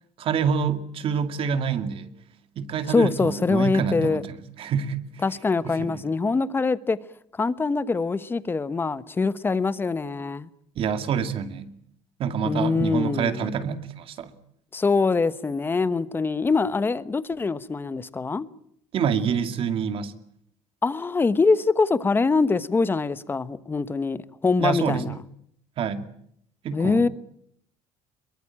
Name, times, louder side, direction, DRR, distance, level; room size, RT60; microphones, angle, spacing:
voice 1, 0.2-2.1 2.6-4.3 4.6-5.2 5.6-6.0 10.8-11.7 12.2-14.3 18.9-20.1 24.6-25.0 25.8-26.0 26.6-27.1, right 7 dB, 50° right, 2.3 m, -27 dB
voice 2, 2.9-4.2 5.2-7.0 7.4-10.5 12.4-13.5 14.7-18.5 20.8-25.1 26.7-27.1, left 4 dB, 15° left, 1.1 m, -24 dB
24.0 x 22.5 x 8.8 m
cardioid pair, 135°, 12 cm